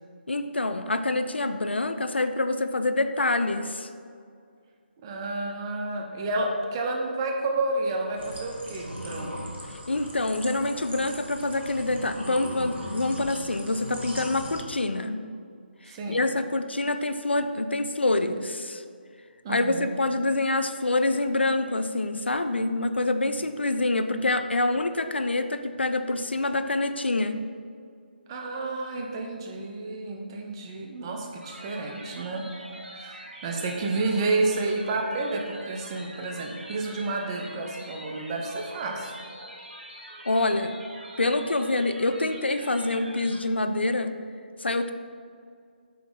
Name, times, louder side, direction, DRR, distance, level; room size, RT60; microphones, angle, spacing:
voice 1, 0.3-3.9 9.9-15.2 15.8-18.8 19.5-27.4 40.3-40.8 41.2-44.2 44.6-44.9, left 2 dB, 75° left, 9 dB, 0.4 m, -26 dB
voice 2, 5.0-9.3 15.8-16.2 19.4-19.9 28.3-32.5 32.9-39.2, right 2 dB, 25° right, 2 dB, 0.6 m, -30 dB
sound 1, 8.2-14.6, equal, 90° right, 1.3 m, -39 dB
sound 2, 31.4-43.4, right 1 dB, 65° right, 1.2 m, -44 dB
7.6 x 4.1 x 3.3 m, 2.2 s
figure-of-eight pair, 145°, 6 cm